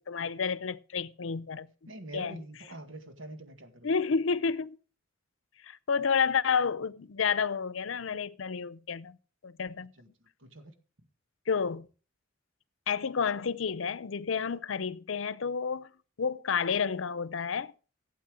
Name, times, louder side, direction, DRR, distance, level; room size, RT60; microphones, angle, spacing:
voice 1, 0.1-2.4 3.8-4.8 5.6-9.2 9.4-9.9 11.5-11.9 12.9-15.9 16.2-17.7, left 6 dB, 85° left, 0.6 m, -30 dB
voice 2, 1.9-3.9 10.0-10.1 10.4-10.7, right 2 dB, 75° right, 2.0 m, -45 dB
16.0 x 8.3 x 4.9 m
head